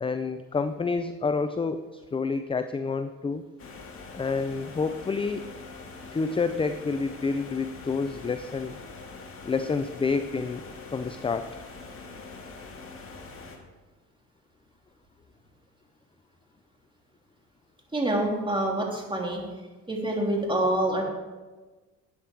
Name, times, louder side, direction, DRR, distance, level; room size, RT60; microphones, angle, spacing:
voice 1, 0.0-3.5 4.1-5.4 6.1-8.8 9.4-10.6 10.9-11.5, left 4 dB, 15° left, 10 dB, 0.5 m, -28 dB
sound 1, 3.6-13.6, left 4 dB, 35° left, 2.3 m, -43 dB
voice 2, 17.9-19.4 19.9-21.0, right 1 dB, 15° right, -1 dB, 3.2 m, -26 dB
12.5 x 8.8 x 4.6 m, 1.3 s
supercardioid pair, 90°, 36 cm